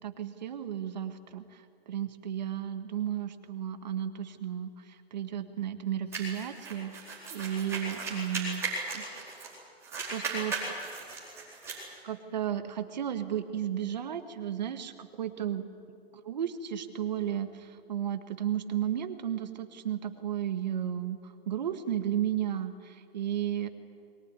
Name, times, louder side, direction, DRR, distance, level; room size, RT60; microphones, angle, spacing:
voice 1, 0.0-8.7 8.9-9.4 10.1-10.6 12.0-15.6 16.1-23.7, right 10 dB, 45° right, 9 dB, 1.6 m, -34 dB
sound 1, 6.1-9.6 9.8-11.8, right 3 dB, 10° right, 4.5 m, -36 dB
22.5 x 19.0 x 9.8 m, 2.5 s
hypercardioid pair, 170°, 31 cm